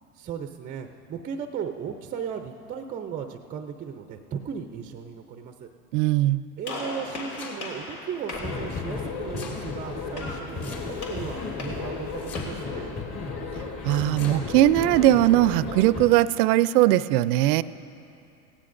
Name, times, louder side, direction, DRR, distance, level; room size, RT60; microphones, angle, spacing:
voice 1, 0.1-5.7 6.0-6.1 6.6-13.0, right 7 dB, 20° right, 6 dB, 0.4 m, -36 dB
voice 2, 5.9-6.4 13.8-17.6, right 14 dB, 80° right, 17 dB, 0.5 m, -20 dB
Gunshot gunfire, 6.6-12.7, left 2 dB, 85° left, 3.0 m, -39 dB
Domestic sounds home sounds, 7.0-7.9 8.9-9.6 10.6-11.2 12.2-12.8 13.9-14.4, left 4 dB, 55° left, 2.7 m, -43 dB
sound 1, 8.3-16.2, left 4 dB, 35° left, 1.6 m, -34 dB
18.0 x 16.0 x 2.5 m, 2.6 s
supercardioid pair, 115°, 46 cm